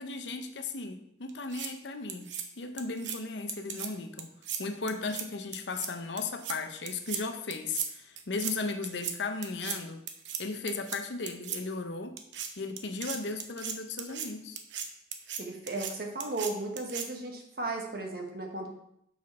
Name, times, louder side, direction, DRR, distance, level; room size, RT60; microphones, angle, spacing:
voice 1, 0.0-4.3 4.6-10.0 10.4-12.2 12.6-14.6, left 3 dB, 75° left, 7 dB, 0.7 m, -36 dB
sound 1, 1.3-1.7 2.1-2.4 2.8-3.2 3.5-3.9 4.2-4.6 4.9-5.2 5.5-5.9 6.2-6.6 6.9-7.2 7.5-7.9 8.2-8.5 8.8-9.1 9.4-9.8 10.1-10.4 10.7-11.0 11.3-11.6 12.2-12.5 12.8-14.3 14.6-14.9 15.1-15.4 15.7-15.9 16.2-16.5 16.8-17.1, right 8 dB, 85° right, 0.8 m, -36 dB
voice 2, 15.4-18.8, right 2 dB, 55° right, 1 dB, 1.3 m, -35 dB
6.4 x 5.8 x 4.2 m, 0.75 s
head